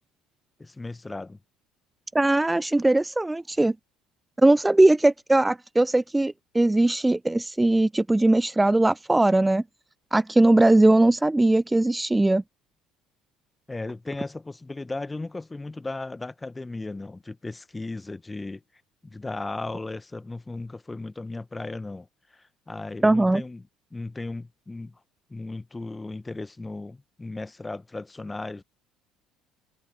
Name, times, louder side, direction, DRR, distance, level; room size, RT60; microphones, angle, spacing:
voice 1, 0.6-1.4 13.7-18.6 19.0-22.1 22.3-23.6 23.9-24.9 25.3-28.6, left 2 dB, 15° left, 1.3 m, -36 dB
voice 2, 2.1-3.7 4.4-9.6 10.1-12.4 23.0-23.4, right 2 dB, 10° right, 0.5 m, -20 dB
figure-of-eight pair, 55°, 0 cm